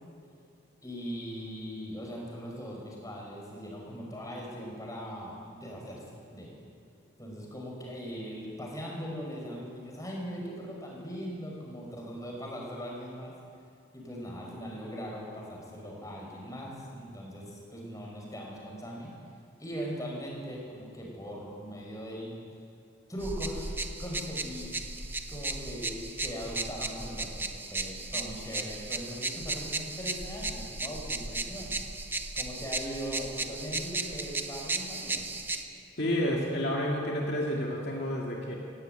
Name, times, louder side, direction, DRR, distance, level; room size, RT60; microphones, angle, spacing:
voice 1, 0.8-6.0 6.3-6.6 7.2-13.3 13.9-19.1 19.6-22.3 23.1-23.7 24.0-31.8 32.3-35.3, equal, 20° left, -2 dB, 5.2 m, -40 dB
sound 1, 23.2-35.6, right 2 dB, 10° right, 0.8 m, -35 dB
voice 2, 36.0-38.6, equal, 60° left, -2 dB, 2.3 m, -30 dB
17.5 x 17.0 x 9.2 m, 2.4 s
head